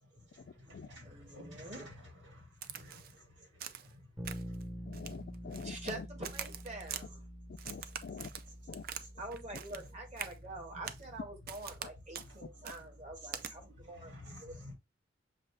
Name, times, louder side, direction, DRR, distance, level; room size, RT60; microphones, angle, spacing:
voice 1, 0.1-4.1 9.7-9.8 12.2-12.9 13.2-13.5 13.8-14.7, left 1 dB, 80° right, 2.1 m, -53 dB
voice 2, 1.0-1.9 5.6-7.2 9.2-14.7, right 2 dB, 35° right, 1.5 m, -46 dB
Crack, 2.6-3.2 3.6-3.9 4.3-4.6 4.9-6.0 6.2-7.0 7.6-9.1 9.3-9.9 10.2-10.4 10.9-11.1 11.5-11.9 12.1-12.3 12.7-12.8 13.3-13.5, right 9 dB, 55° right, 0.4 m, -44 dB
Bass guitar, 4.2-14.0, equal, 10° right, 0.7 m, -48 dB
voice 3, 4.9-6.1 7.6-8.3 8.7-8.8, left 5 dB, 55° left, 0.4 m, -45 dB
6.6 x 2.4 x 3.2 m
head